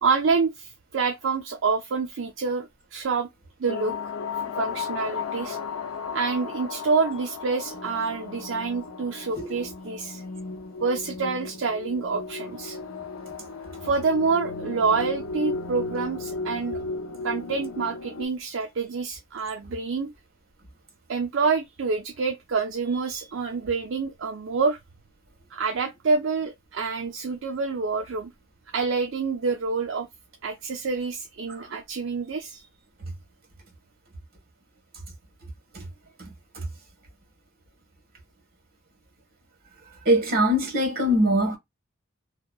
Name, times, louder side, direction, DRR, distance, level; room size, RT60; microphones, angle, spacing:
voice 1, 0.0-3.3 3.6-3.9 4.4-5.6 6.1-10.2 10.8-12.8 13.8-16.8 17.2-20.1 21.1-24.8 25.5-28.3 28.7-30.1 30.4-32.6, right 4 dB, 60° right, 0.4 m, -27 dB
sound 1, 3.7-18.2, left 4 dB, 85° left, 0.5 m, -35 dB
voice 2, 40.0-41.6, equal, 45° right, 1.2 m, -22 dB
2.8 x 2.2 x 2.3 m
head